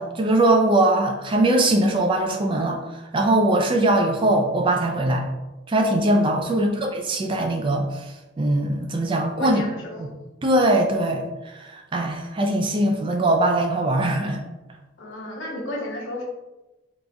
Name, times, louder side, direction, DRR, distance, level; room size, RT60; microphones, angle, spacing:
voice 1, 0.0-2.8 3.1-5.3 5.7-9.6 10.0-10.1 10.4-11.2 11.5-14.4, right 1 dB, 25° right, 3 dB, 0.3 m, -21 dB
voice 2, 6.5-6.9 9.4-10.1 15.0-16.2, left 1 dB, 80° left, 0 dB, 0.7 m, -33 dB
3.8 x 2.4 x 2.2 m, 1.1 s
head